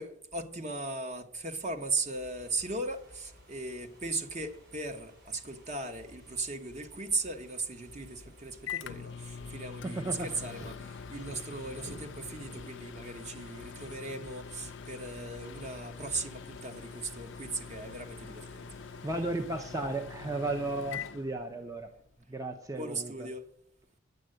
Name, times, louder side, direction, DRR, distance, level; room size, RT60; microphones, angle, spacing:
voice 1, 0.0-18.7 22.7-23.4, right 3 dB, 40° right, 1.1 m, -37 dB
Ocean / Fireworks, 1.2-20.4, equal, 55° right, 5.5 m, -55 dB
Microwave oven, 8.0-22.0, left 6 dB, 70° left, 0.5 m, -44 dB
voice 2, 9.8-11.0 18.9-21.9 22.3-23.3, right 2 dB, 20° right, 0.7 m, -35 dB
9.5 x 7.6 x 7.7 m
head